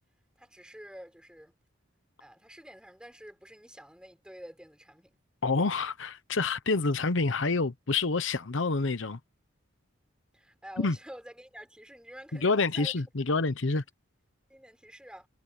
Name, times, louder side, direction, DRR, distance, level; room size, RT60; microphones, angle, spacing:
voice 1, 0.4-1.5 2.2-5.2 10.3-13.0 13.3-13.5 14.5-15.3, equal, 5° right, 6.6 m, -48 dB
voice 2, 5.4-9.2 10.8-11.0 12.3-13.8, left 3 dB, 70° left, 0.9 m, -27 dB
head